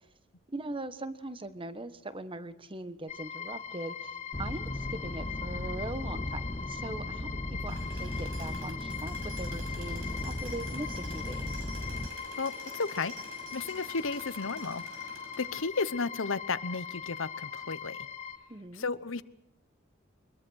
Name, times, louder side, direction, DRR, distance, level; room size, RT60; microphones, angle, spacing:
voice 1, 0.5-4.1 4.4-11.6 18.5-18.9, right 2 dB, 25° right, 12 dB, 1.3 m, -41 dB
sound 1, 3.1-18.4, left 7 dB, 35° left, 2.9 m, -41 dB
sound 2, 4.3-12.1, left 1 dB, 20° left, 0.9 m, -37 dB
Tools, 7.7-16.0, right 3 dB, 80° right, 7.1 m, -49 dB
voice 2, 12.4-13.1 13.5-14.8 15.4-18.0 18.7-19.2, left 4 dB, 70° left, 14 dB, 1.0 m, -33 dB
23.5 x 22.0 x 6.4 m, 0.86 s
head